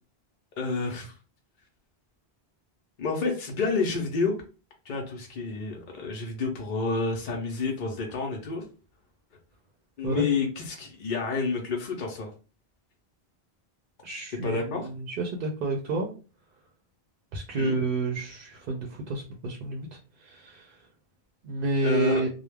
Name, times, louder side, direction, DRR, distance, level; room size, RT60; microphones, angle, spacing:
voice 1, 0.6-1.1 3.0-4.3 4.9-8.6 10.0-12.3 14.4-14.9 17.5-17.8 21.8-22.2, left 4 dB, 55° left, 0 dB, 0.7 m, -29 dB
voice 2, 14.0-16.1 17.3-20.8 21.4-22.3, right 3 dB, 60° right, 1 dB, 0.7 m, -30 dB
2.3 x 2.0 x 3.1 m, 0.35 s
omnidirectional pair, 1.0 m